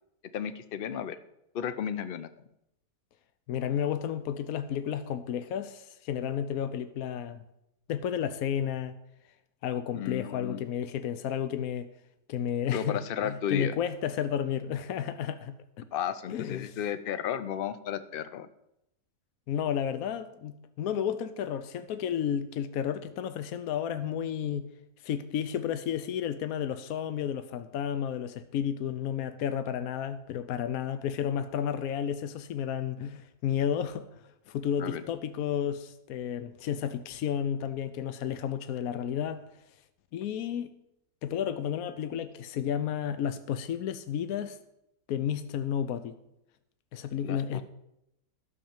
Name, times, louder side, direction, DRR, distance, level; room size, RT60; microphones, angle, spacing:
voice 1, 0.3-1.2 1.5-2.3 9.9-10.6 12.7-13.8 15.9-18.5 34.8-35.0 47.2-47.6, left 9 dB, 50° left, 0.7 m, -33 dB
voice 2, 3.5-7.4 7.9-9.0 9.6-11.9 12.3-15.9 16.3-16.8 19.5-24.6 25.0-34.1 34.5-39.4 40.1-40.7 41.2-44.6 45.1-46.2 46.9-47.6, left 9 dB, 75° left, 1.1 m, -32 dB
12.0 x 6.6 x 7.1 m
omnidirectional pair, 1.6 m